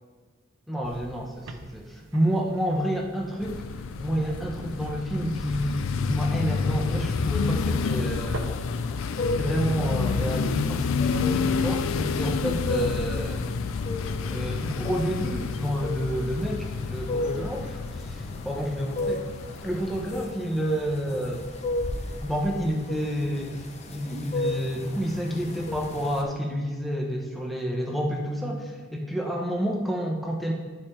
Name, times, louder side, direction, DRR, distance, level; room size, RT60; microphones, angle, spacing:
voice 1, 0.7-3.6 3.9-8.6 9.3-10.9 11.3-13.5 14.2-19.2 19.6-21.4 22.2-23.6 23.9-30.5, equal, ahead, -1 dB, 0.8 m, -29 dB
sound 1, 0.8-8.4, right 3 dB, 75° right, 0.6 m, -47 dB
sound 2, 3.4-20.2, left 5 dB, 90° left, 0.4 m, -29 dB
sound 3, 7.6-26.2, left 2 dB, 35° left, 0.6 m, -35 dB
12.5 x 4.3 x 3.3 m, 1.5 s
head